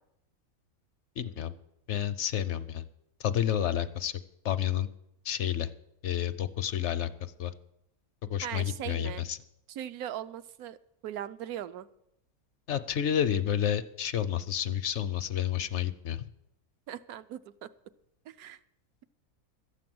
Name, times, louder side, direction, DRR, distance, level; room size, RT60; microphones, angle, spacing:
voice 1, 1.2-1.6 1.9-2.8 3.2-4.2 4.4-4.9 5.2-5.7 6.0-7.5 8.2-9.4 12.7-16.3, left 10 dB, 65° left, 13 dB, 0.8 m, -30 dB
voice 2, 8.4-9.2 9.7-10.8 11.0-11.9 16.9-17.7 18.3-18.6, right 11 dB, 80° right, 13 dB, 1.1 m, -39 dB
12.5 x 8.4 x 7.7 m, 0.81 s
omnidirectional pair, 1.6 m